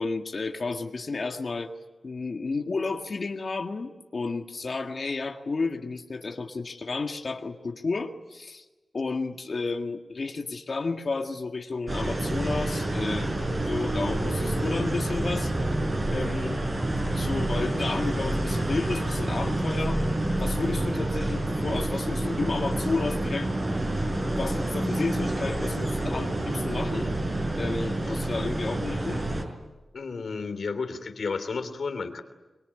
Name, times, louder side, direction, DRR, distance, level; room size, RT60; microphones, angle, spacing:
voice 1, 0.0-1.7 2.0-8.7 8.9-13.3 13.6-15.5 16.1-16.6 17.1-20.0 20.4-23.5 24.4-27.1 27.6-29.2, left 3 dB, 50° left, 4 dB, 1.8 m, -32 dB
sound 1, 11.9-29.4, right 1 dB, 35° right, 5.5 m, -28 dB
voice 2, 29.9-32.2, left 4 dB, 65° left, 9 dB, 3.2 m, -32 dB
26.0 x 22.5 x 9.9 m, 1.1 s
wide cardioid pair, 115°, 0 cm